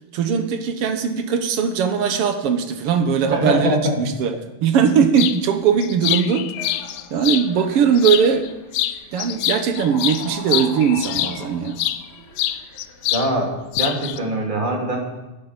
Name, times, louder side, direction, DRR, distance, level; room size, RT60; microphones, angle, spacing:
voice 1, 0.1-4.3 4.6-6.5 7.1-8.5 9.1-11.8, right 7 dB, 60° right, 7 dB, 1.7 m, -19 dB
voice 2, 3.3-4.0 13.1-13.5 13.8-15.0, right 1 dB, 15° right, 0 dB, 2.4 m, -22 dB
sound 1, 5.2-5.4 5.8-7.5 8.0-8.5 8.7-12.0 12.4-13.3 13.5-14.2, left 13 dB, 80° left, 1.9 m, -24 dB
sound 2, 6.5-13.3, left 2 dB, 40° left, 2.4 m, -41 dB
10.5 x 10.5 x 8.2 m, 1.0 s
omnidirectional pair, 3.4 m